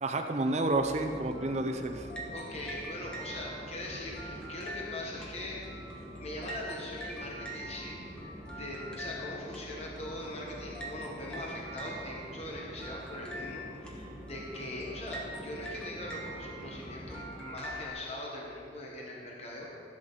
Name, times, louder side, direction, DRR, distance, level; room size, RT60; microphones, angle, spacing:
voice 1, 0.0-2.1, right 2 dB, 35° right, 5 dB, 0.6 m, -30 dB
sound 1, 0.6-17.9, right 1 dB, 5° left, 1.2 m, -44 dB
Conversation / Chatter / Fixed-wing aircraft airplane, 1.0-17.7, equal, 15° right, 1.4 m, -47 dB
voice 2, 2.3-5.6 6.0-19.7, left 1 dB, 35° left, -2 dB, 1.3 m, -41 dB
14.5 x 7.8 x 4.0 m, 2.8 s
head